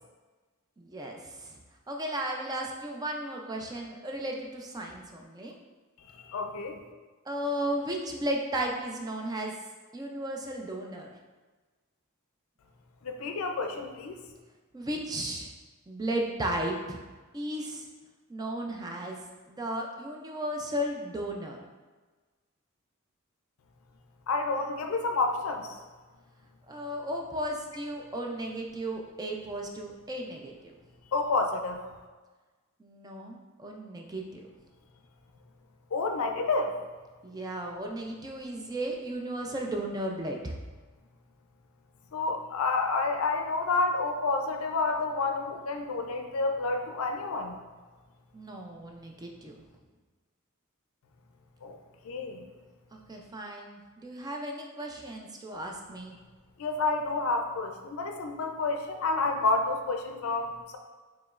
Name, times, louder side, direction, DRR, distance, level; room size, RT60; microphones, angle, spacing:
voice 1, 0.8-1.6 1.9-5.5 7.3-9.5 9.9-11.1 14.7-15.5 15.9-17.0 17.3-17.9 18.3-19.2 19.5-21.6 26.7-30.7 32.8-34.5 37.2-40.6 48.3-49.5 52.9-56.2, right 1 dB, 20° right, 1 dB, 0.4 m, -35 dB
voice 2, 6.1-6.8 13.0-14.2 24.3-25.8 31.1-31.8 35.9-36.8 42.1-47.6 51.6-51.8 52.0-52.4 56.6-60.8, left 3 dB, 75° left, 4 dB, 0.4 m, -29 dB
4.9 x 3.1 x 2.4 m, 1.3 s
head